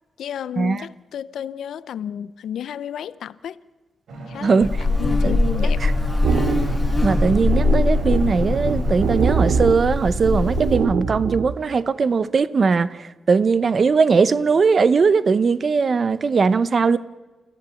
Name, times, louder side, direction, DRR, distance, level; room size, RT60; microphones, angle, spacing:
voice 1, 0.2-3.6 4.3-4.7 5.0-5.8, left 9 dB, 85° left, 0.6 m, -32 dB
sound 1, 4.1-9.6, right 2 dB, 65° right, 4.6 m, -34 dB
Buzz, 4.6-10.8, left 3 dB, 10° left, 5.0 m, -22 dB
voice 2, 5.2-5.9 7.0-17.0, right 5 dB, 35° right, 0.7 m, -19 dB
sound 2, 6.2-11.5, right 6 dB, 85° right, 0.9 m, -24 dB
29.5 x 14.5 x 8.3 m
wide cardioid pair, 170°, 0 cm